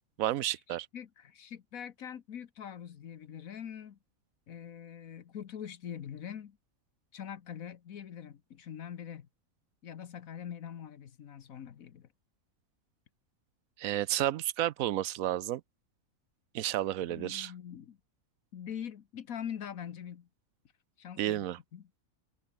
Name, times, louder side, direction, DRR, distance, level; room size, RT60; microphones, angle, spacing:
voice 1, 0.2-0.9 13.8-15.6 16.5-17.5 21.2-21.6, right 13 dB, 75° right, 1.1 m, -31 dB
voice 2, 0.7-4.0 4.5-6.6 7.1-9.3 9.8-12.1 17.1-18.0 18.5-20.3 21.0-21.4 21.7-22.0, left 9 dB, 75° left, 1.5 m, -43 dB
omnidirectional pair, 1.5 m